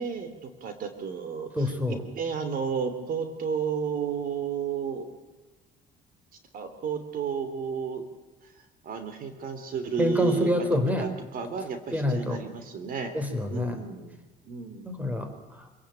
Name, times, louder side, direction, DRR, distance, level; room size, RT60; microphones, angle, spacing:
voice 1, 0.0-5.1 6.5-8.0 8.4-8.5 8.8-10.7 11.0-13.1 13.5-14.2 14.4-14.9, right 6 dB, 55° right, 9 dB, 3.1 m, -32 dB
voice 2, 1.6-2.1 10.0-11.1 11.9-12.4 13.1-13.8 14.8-15.7, left 1 dB, 10° right, 8 dB, 4.3 m, -27 dB
26.5 x 17.0 x 9.1 m, 1.2 s
cardioid pair, 110°, 17 cm